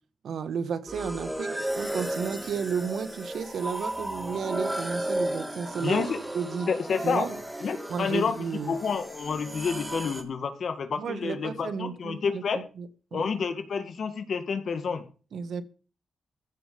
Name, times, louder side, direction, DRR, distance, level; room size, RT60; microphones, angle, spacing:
voice 1, 0.2-6.0 6.3-6.7 7.0-7.4 7.9-8.8 11.0-13.3 15.3-15.6, right 6 dB, 75° right, 12 dB, 1.6 m, -33 dB
sound 1, 0.9-10.2, right 1 dB, 10° right, 3.3 m, -34 dB
voice 2, 5.8-6.2 6.7-7.3 7.6-12.6 13.1-15.0, left 5 dB, 65° left, 8 dB, 2.0 m, -29 dB
15.5 x 7.1 x 7.0 m, 0.38 s
cardioid pair, 85°, 0 cm